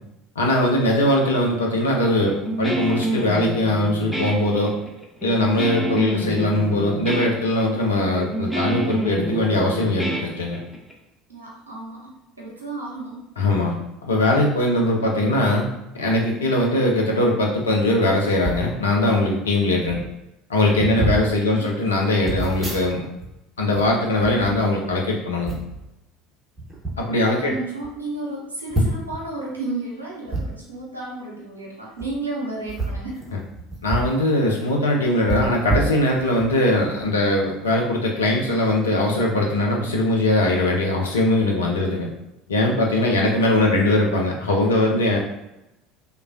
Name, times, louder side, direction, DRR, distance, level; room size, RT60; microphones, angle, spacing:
voice 1, 0.4-4.7 5.2-10.6 13.4-13.8 14.0-15.7 15.9-20.0 20.5-23.1 23.6-25.5 27.0-27.5 33.8-42.1 42.5-45.2, left 1 dB, 75° left, 0 dB, 0.5 m, -21 dB
Guitar, 2.3-10.9, equal, ahead, 0.5 m, -27 dB
voice 2, 11.3-13.2 21.1-21.8 27.3-33.3 41.8-42.0, right 2 dB, 85° right, -5 dB, 0.7 m, -33 dB
sound 1, 18.4-18.7 19.5-19.6 19.8-20.1 20.7-21.3 22.2-23.3 23.6-25.0 25.5-25.8 26.6-27.0 27.5-27.6 27.8-27.9 28.7-29.2 30.3-30.4 31.9-32.1 32.6-34.2 34.5-34.6 35.3-36.5 37.0-37.1, right 2 dB, 25° right, 0.8 m, -27 dB
3.1 x 2.2 x 2.4 m, 0.92 s
figure-of-eight pair, 65°, 0 cm